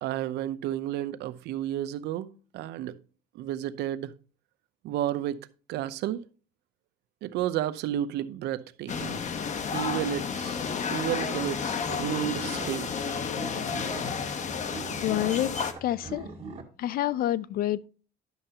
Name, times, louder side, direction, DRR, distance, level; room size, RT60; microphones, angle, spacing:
voice 1, 0.0-3.0 3.3-4.1 4.8-5.4 5.7-6.2 7.2-9.2 9.7-13.1, right 12 dB, 80° right, 0.7 m, -32 dB
sound 1, 8.9-15.7, left 6 dB, 45° left, 1.0 m, -31 dB
sound 2, 11.4-16.6, right 3 dB, 40° right, 1.9 m, -42 dB
voice 2, 15.0-15.5 15.8-16.3 16.8-17.9, left 13 dB, 60° left, 0.5 m, -27 dB
10.5 x 6.6 x 2.9 m
cardioid pair, 110°, 17 cm